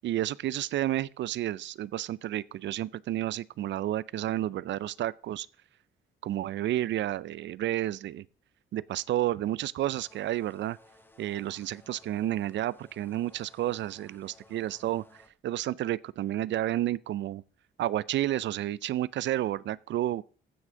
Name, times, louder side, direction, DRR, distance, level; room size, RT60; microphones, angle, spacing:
voice 1, 0.0-5.5 6.2-8.3 8.7-10.8 11.2-17.4 17.8-20.2, right 13 dB, 65° right, 0.5 m, -31 dB
sound 1, 9.8-15.3, left 1 dB, 10° left, 1.2 m, -58 dB
15.0 x 6.2 x 3.8 m
cardioid pair, 90°, 20 cm